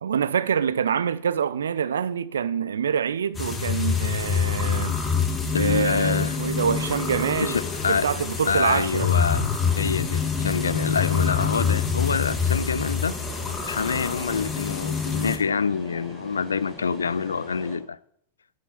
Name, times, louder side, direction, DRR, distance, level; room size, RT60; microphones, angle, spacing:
voice 1, 0.0-5.0 5.6-7.6 7.9-9.1, right 7 dB, 65° right, 0.6 m, -26 dB
sound 1, 3.3-15.4, left 6 dB, 20° left, 1.9 m, -26 dB
sound 2, 4.9-17.8, left 1 dB, ahead, 4.4 m, -42 dB
voice 2, 5.5-6.4 7.4-8.1 8.4-9.5 9.8-13.2 13.6-18.0, left 5 dB, 70° left, 0.4 m, -26 dB
9.2 x 7.7 x 7.0 m
figure-of-eight pair, 90°, 0 cm